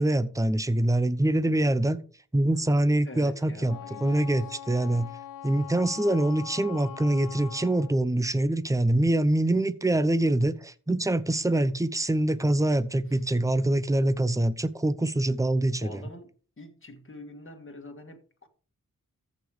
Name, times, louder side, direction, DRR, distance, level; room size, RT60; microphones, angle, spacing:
voice 1, 0.0-2.0 2.3-5.1 5.4-16.0, right 1 dB, 10° right, 0.7 m, -25 dB
voice 2, 3.0-4.5 13.1-13.2 15.8-16.3 16.6-18.5, left 1 dB, 35° left, 1.9 m, -45 dB
Wind instrument woodwind instrument, 3.7-8.0, left 10 dB, 70° left, 0.5 m, -42 dB
14.5 x 5.2 x 5.0 m
wide cardioid pair, 95°, 34 cm